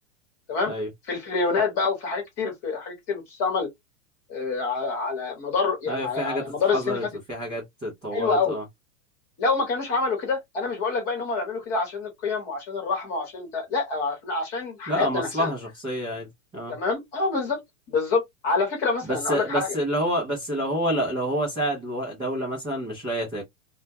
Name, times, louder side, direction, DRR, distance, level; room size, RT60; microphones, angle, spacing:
voice 1, 1.1-3.7 4.3-7.0 8.1-8.6 9.4-15.5 16.7-17.6 17.9-19.8, left 4 dB, 25° left, 1.0 m, -27 dB
voice 2, 5.9-8.6 14.9-16.8 19.0-23.4, equal, 10° right, 0.4 m, -28 dB
2.2 x 2.1 x 2.6 m
supercardioid pair, 165°, 40 cm